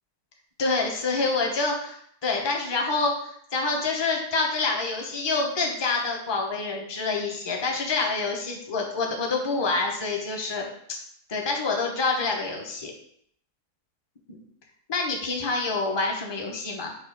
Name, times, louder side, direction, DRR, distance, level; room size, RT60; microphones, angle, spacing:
voice 1, 0.6-11.0 11.3-12.9 14.3-14.4 14.9-16.9, left 3 dB, 20° left, 1 dB, 0.7 m, -27 dB
7.3 x 2.7 x 5.1 m, 0.67 s
omnidirectional pair, 1.7 m